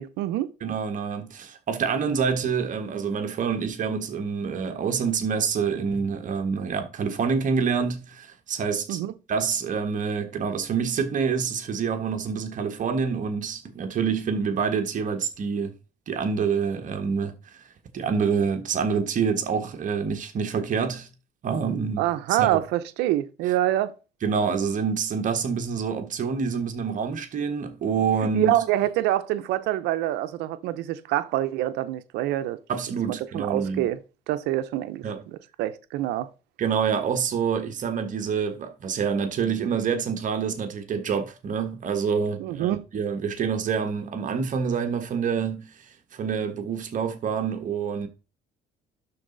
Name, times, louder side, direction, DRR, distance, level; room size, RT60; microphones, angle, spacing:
voice 1, 0.0-0.5 8.9-9.1 22.0-23.9 28.2-32.6 33.1-34.0 34.3-35.1 35.6-36.3 42.4-42.8, right 14 dB, 90° right, 0.7 m, -26 dB
voice 2, 0.6-9.0 9.3-15.7 16.1-17.4 17.9-21.1 21.4-22.6 24.2-28.5 32.7-33.9 35.0-35.2 36.6-45.8 46.1-48.1, right 6 dB, 50° right, 1.4 m, -27 dB
11.5 x 4.1 x 3.9 m
cardioid pair, 110°, 17 cm